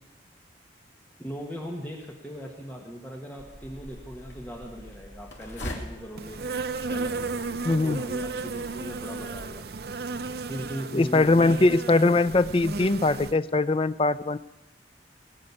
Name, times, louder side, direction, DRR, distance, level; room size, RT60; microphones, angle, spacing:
voice 1, 1.2-6.4 6.9-9.7 10.4-11.7, equal, 10° left, 0 dB, 1.5 m, -39 dB
Office fridge, 3.4-9.6, left 1 dB, 80° left, 2.7 m, -43 dB
Insect, 6.2-13.4, right 3 dB, 55° right, 0.6 m, -34 dB
voice 2, 7.6-8.0 10.9-14.4, left 2 dB, 30° left, 14 dB, 0.4 m, -21 dB
19.5 x 6.5 x 9.7 m, 1.0 s
head